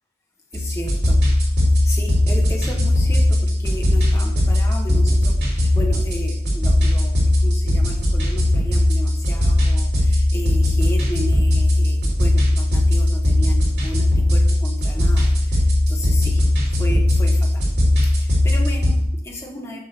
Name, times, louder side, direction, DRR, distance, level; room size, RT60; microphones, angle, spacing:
voice 1, 0.5-1.2 1.8-16.4 16.7-17.7 18.0-19.8, left 1 dB, 15° left, 0 dB, 1.4 m, -34 dB
sound 1, 0.5-18.9, left 1 dB, 65° right, 3.6 m, -18 dB
7.0 x 5.3 x 6.9 m, 0.78 s
head